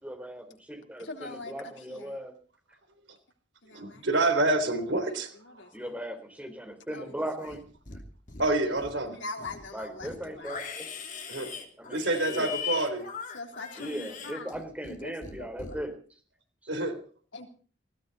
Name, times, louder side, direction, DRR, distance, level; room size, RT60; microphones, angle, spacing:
voice 1, 0.0-2.3 5.7-7.6 9.7-10.9 11.8-12.0 12.3-12.5 13.8-16.0, right 1 dB, 10° right, 3.8 m, -38 dB
voice 2, 1.0-2.1 3.6-4.0 5.5-5.7 6.9-7.1 9.1-10.5 13.3-14.5 14.9-15.7 17.3-17.5, left 2 dB, 80° left, 3.4 m, -42 dB
voice 3, 3.7-5.3 8.4-9.2 11.3-11.5 11.9-13.1 16.7-17.0, right 2 dB, 70° right, 3.6 m, -27 dB
Livestock farm animals working animals, 7.4-8.0 8.3-9.0 9.4-15.0 15.2-15.7, left 6 dB, 45° left, 2.9 m, -40 dB
20.0 x 17.0 x 4.1 m
head